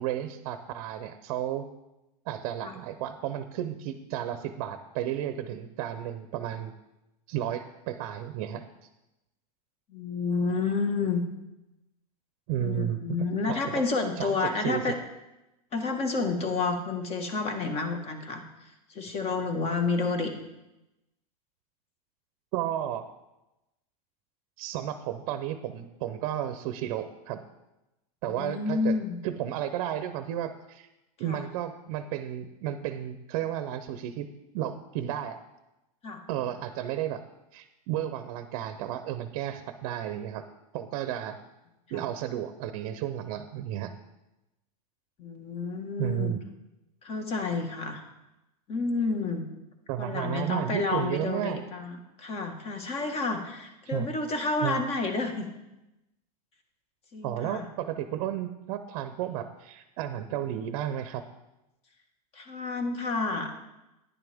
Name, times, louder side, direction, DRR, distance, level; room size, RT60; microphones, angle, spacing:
voice 1, 0.0-1.7 2.3-6.7 7.3-8.6 12.5-13.2 13.5-13.6 14.2-15.0 22.5-23.1 24.6-27.4 28.2-29.0 29.2-30.9 31.2-34.3 34.5-35.4 36.3-37.2 37.5-40.4 40.7-41.4 41.9-43.9 46.0-46.4 49.9-51.6 53.9-54.1 54.6-54.8 57.2-61.2, right 11 dB, 55° right, 9 dB, 0.7 m, -33 dB
voice 2, 9.9-11.2 12.6-15.0 15.7-20.3 28.3-29.2 31.2-31.4 36.0-36.2 41.9-42.0 45.2-46.3 47.0-48.0 48.7-49.4 50.0-55.4 57.1-57.7 62.3-63.6, left 4 dB, 30° left, 5 dB, 1.6 m, -30 dB
10.5 x 10.0 x 3.5 m, 0.95 s
supercardioid pair, 130°, 20 cm